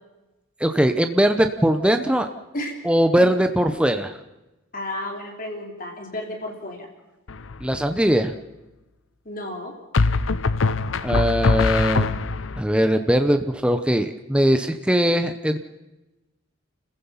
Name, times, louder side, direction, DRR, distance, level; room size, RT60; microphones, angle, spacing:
voice 1, 0.6-2.3 2.8-4.2 7.6-8.3 11.0-15.6, equal, 5° right, 7 dB, 0.8 m, -20 dB
voice 2, 4.7-6.9 9.3-9.7, left 1 dB, 40° left, 2 dB, 3.5 m, -32 dB
sound 1, 7.3-7.8 9.9-12.6, left 3 dB, 70° left, 0.7 m, -22 dB
30.0 x 15.5 x 5.7 m, 1.0 s
head